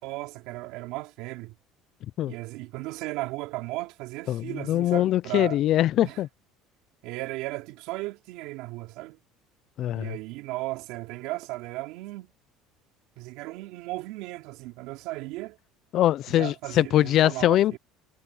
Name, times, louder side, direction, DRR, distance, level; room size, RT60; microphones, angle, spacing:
voice 1, 0.0-1.5 2.3-5.6 6.0-6.2 7.0-9.2 9.9-12.3 13.2-15.6 16.3-17.8, right 20 dB, 65° right, 3.5 m, -36 dB
voice 2, 4.3-6.3 9.8-10.2 15.9-17.8, left 13 dB, 40° left, 0.4 m, -23 dB
cardioid pair, 165°, 0 cm